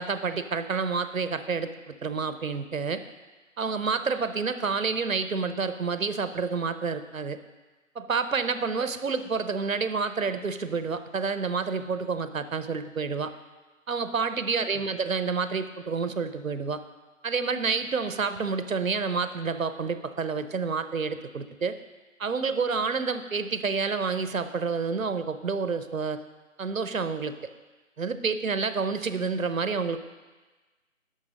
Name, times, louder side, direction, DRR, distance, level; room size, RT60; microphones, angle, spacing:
voice 1, 0.0-3.0 3.6-7.4 7.9-13.3 13.9-16.8 17.2-21.8 22.2-26.2 26.6-27.3 28.0-30.0, right 5 dB, 75° right, 11 dB, 0.9 m, -29 dB
10.5 x 6.4 x 5.1 m, 1.2 s
figure-of-eight pair, 170°, 41 cm